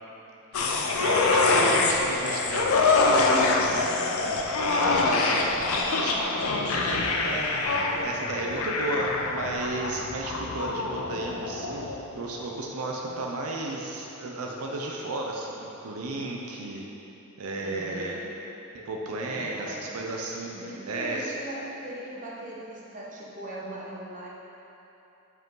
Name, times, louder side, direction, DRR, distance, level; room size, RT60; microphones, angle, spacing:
sound 1, 0.5-12.1 12.4-12.5, left 3 dB, 70° left, 0.6 m, -25 dB
voice 1, 0.7-3.8 4.7-16.9 17.4-18.2 18.7-20.5 20.9-21.3, right 2 dB, 90° right, -1 dB, 0.6 m, -34 dB
voice 2, 4.8-5.3 6.6-7.5 7.8-8.6 9.9-10.0 13.0-13.2 17.6-18.3 19.3-19.9 20.5-24.3, right 1 dB, 40° right, -6 dB, 1.2 m, -40 dB
7.9 x 4.9 x 3.9 m, 3.0 s
head